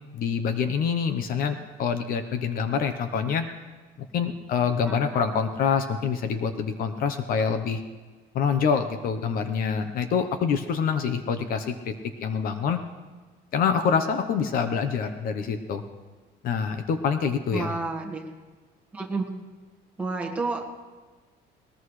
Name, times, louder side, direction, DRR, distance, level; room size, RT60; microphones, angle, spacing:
voice 1, 0.1-3.4 4.1-7.8 8.3-11.9 12.2-12.8 13.5-15.8 16.4-17.7, left 6 dB, 50° left, 8 dB, 0.9 m, -26 dB
voice 2, 4.9-5.2 17.5-18.3 18.9-19.2 20.0-20.7, right 3 dB, 5° right, -2 dB, 1.7 m, -30 dB
20.0 x 20.0 x 3.3 m, 1.4 s
cardioid pair, 175°, 19 cm